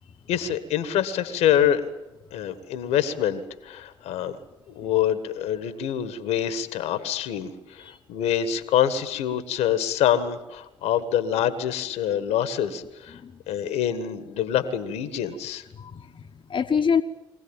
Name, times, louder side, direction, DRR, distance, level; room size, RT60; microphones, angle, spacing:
voice 1, 0.3-1.8 2.3-4.4 4.7-13.2 13.5-15.6, left 10 dB, 75° left, 12 dB, 1.6 m, -25 dB
voice 2, 15.8-17.0, left 6 dB, 50° left, 4 dB, 1.2 m, -26 dB
23.5 x 17.0 x 8.9 m, 1.0 s
hypercardioid pair, 40°, 11 cm